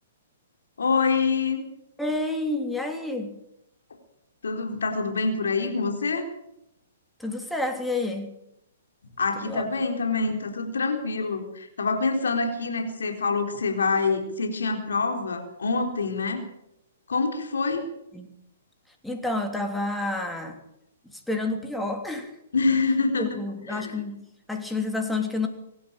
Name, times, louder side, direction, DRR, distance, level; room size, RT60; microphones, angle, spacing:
voice 1, 0.8-1.6 4.4-6.3 9.2-16.4 17.1-17.9 22.5-23.4 23.7-23.9, left 4 dB, 65° left, 4 dB, 4.0 m, -26 dB
voice 2, 2.0-3.4 7.2-8.3 9.4-9.7 18.1-18.4 19.0-20.6 21.1-22.3 23.2-24.2 24.5-25.5, left 2 dB, 5° left, 4 dB, 3.3 m, -29 dB
24.5 x 12.5 x 9.0 m, 0.83 s
figure-of-eight pair, 115°, 0 cm